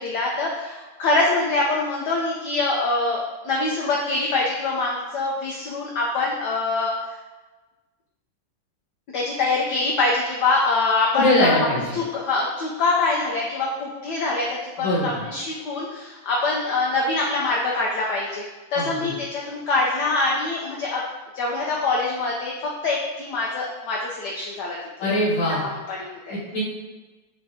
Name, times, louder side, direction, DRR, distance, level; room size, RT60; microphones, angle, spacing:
voice 1, 0.0-7.2 9.1-11.6 11.9-18.4 18.7-21.0 21.3-22.5 22.8-24.8 25.6-26.4, left 3 dB, 70° left, -3 dB, 1.0 m, -24 dB
voice 2, 11.1-12.0 14.8-15.2 18.8-19.1 25.0-25.6 26.3-26.6, left 1 dB, 90° left, -12 dB, 2.1 m, -22 dB
5.8 x 3.2 x 2.7 m, 1.2 s
omnidirectional pair, 2.2 m